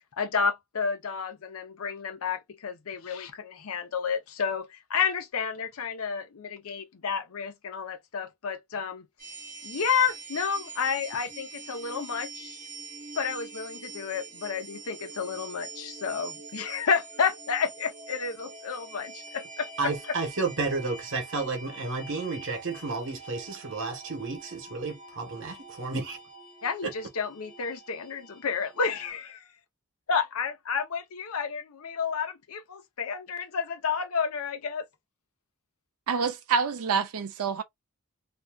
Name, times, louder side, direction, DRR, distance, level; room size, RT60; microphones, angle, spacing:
voice 1, 0.2-9.1 9.6-12.6 13.2-19.9 26.6-29.4 30.1-34.9, left 6 dB, 70° left, 0.6 m, -31 dB
sound 1, 9.2-29.1, right 4 dB, 35° right, 0.9 m, -45 dB
voice 2, 19.8-26.2 26.8-26.9, right 3 dB, 60° right, 1.1 m, -32 dB
voice 3, 36.1-37.6, right 6 dB, 75° right, 0.5 m, -27 dB
2.7 x 2.2 x 2.3 m
head